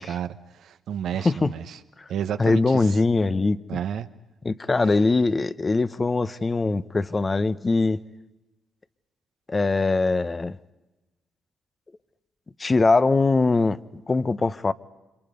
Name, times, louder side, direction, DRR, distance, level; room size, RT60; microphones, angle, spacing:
voice 1, 0.0-1.8 2.1-2.9 3.7-4.1, right 9 dB, 70° right, 1.1 m, -31 dB
voice 2, 2.4-3.8 4.4-8.0 9.5-10.6 12.6-13.8 14.1-14.7, left 3 dB, 30° left, 1.0 m, -22 dB
30.0 x 26.0 x 5.3 m
hypercardioid pair, 50°, 0 cm